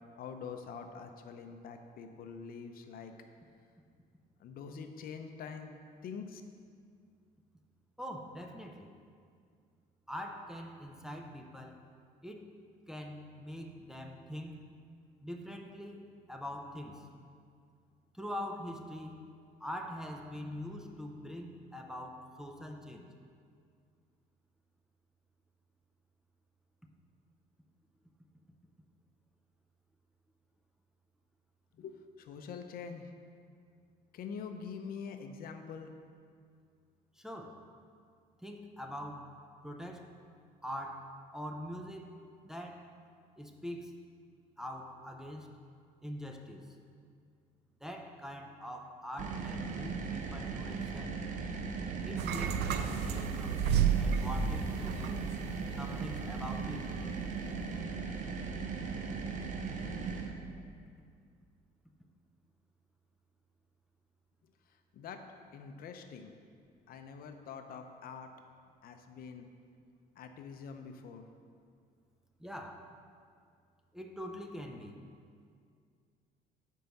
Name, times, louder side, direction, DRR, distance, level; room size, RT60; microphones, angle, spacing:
voice 1, 0.1-3.1 4.4-5.7 6.0-6.4 31.8-33.1 34.1-35.9 64.9-65.2 65.5-66.3 66.9-68.3 68.8-69.5 70.2-71.2, left 6 dB, 60° left, 6 dB, 0.6 m, -45 dB
voice 2, 8.0-8.9 10.1-11.8 12.2-12.5 12.9-14.6 15.2-17.1 18.1-19.2 19.6-23.1 37.2-37.6 38.4-39.3 39.6-40.1 40.6-42.1 42.4-42.9 43.4-43.9 44.6-45.5 46.0-46.8 47.8-51.1 52.0-55.3 55.8-56.9 72.4-72.9 73.9-74.9, equal, 5° right, 2 dB, 0.5 m, -43 dB
sound 1, 49.2-60.3, right 5 dB, 45° right, 0.8 m, -38 dB
sound 2, 52.2-55.6 55.9-56.2, right 7 dB, 80° right, 0.4 m, -31 dB
6.9 x 4.6 x 5.2 m, 2.2 s
cardioid pair, 110°, 17 cm